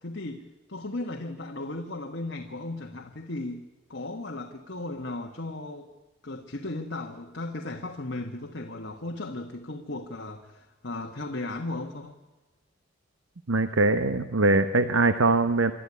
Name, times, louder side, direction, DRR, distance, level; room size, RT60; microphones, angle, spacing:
voice 1, 0.0-3.6 3.9-5.9 6.2-12.2, left 2 dB, 55° left, 3 dB, 1.5 m, -36 dB
voice 2, 13.5-15.7, right 2 dB, 75° right, 10 dB, 1.0 m, -22 dB
26.5 x 12.5 x 9.9 m, 1.2 s
head